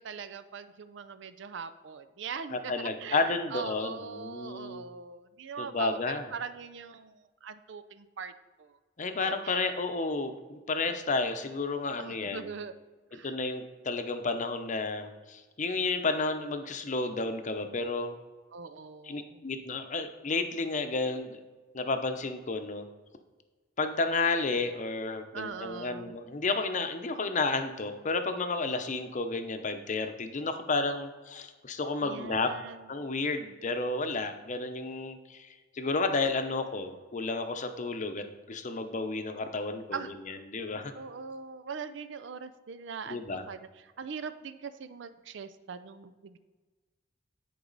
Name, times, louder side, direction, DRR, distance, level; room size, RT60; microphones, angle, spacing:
voice 1, 0.0-8.3 8.6-8.7 9.2-9.8 12.0-12.7 13.1-13.3 18.5-19.5 25.3-26.1 32.0-32.8 39.9-40.1 41.0-43.7 44.0-46.4, right 6 dB, 70° right, 11 dB, 0.5 m, -41 dB
voice 2, 2.5-4.9 5.6-6.3 9.0-12.5 13.2-18.1 19.0-21.4 21.7-22.9 23.8-32.5 32.9-35.5 35.7-40.0 40.3-40.9 43.1-43.4, left 3 dB, 40° left, 7 dB, 0.7 m, -31 dB
10.0 x 4.7 x 4.0 m, 1.3 s
head